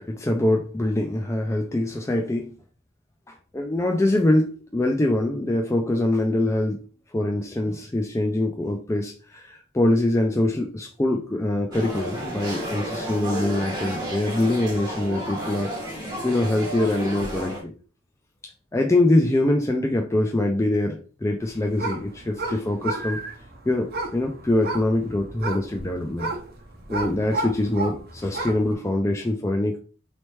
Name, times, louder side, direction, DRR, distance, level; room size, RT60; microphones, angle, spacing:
voice 1, 0.0-2.6 3.3-6.8 7.1-17.7 18.7-23.2 23.7-26.3 26.9-29.8, left 1 dB, 15° left, 0.4 m, -24 dB
sound 1, 11.7-17.6, equal, 20° right, 1.6 m, -32 dB
sound 2, 21.4-28.7, right 2 dB, 50° right, 0.9 m, -33 dB
4.1 x 3.3 x 3.1 m
head